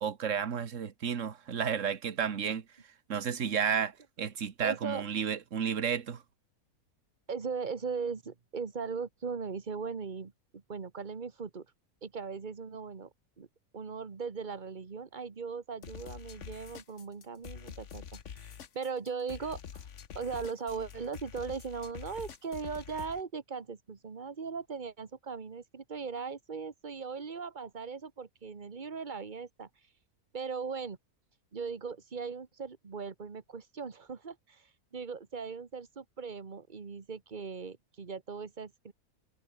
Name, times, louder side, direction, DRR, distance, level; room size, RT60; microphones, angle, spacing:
voice 1, 0.0-2.7 3.1-6.2, right 7 dB, 55° right, 1.7 m, -32 dB
voice 2, 4.6-5.0 7.3-11.6 12.0-13.1 13.4-13.5 13.7-18.5 18.7-19.9 20.1-29.7 30.3-31.0 31.5-34.7 34.9-38.9, right 5 dB, 30° right, 1.5 m, -39 dB
sound 1, 15.8-23.2, left 8 dB, 55° left, 1.4 m, -46 dB
omnidirectional pair, 1.6 m